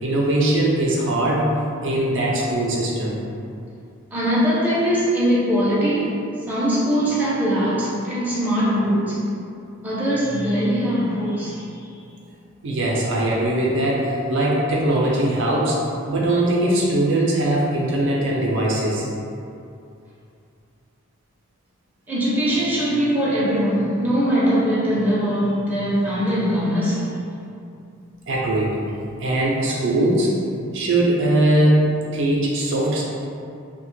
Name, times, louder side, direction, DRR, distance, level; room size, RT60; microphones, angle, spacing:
voice 1, 0.0-1.5 1.8-3.2 12.6-15.8 16.1-19.1 28.3-28.8 29.2-30.3 30.7-31.9 32.1-33.0, right 1 dB, 60° right, -4 dB, 0.5 m, -20 dB
voice 2, 4.1-6.1 6.5-9.2 9.8-11.8 22.1-27.1, equal, 10° right, -9 dB, 0.5 m, -21 dB
2.8 x 2.1 x 3.1 m, 2.5 s
head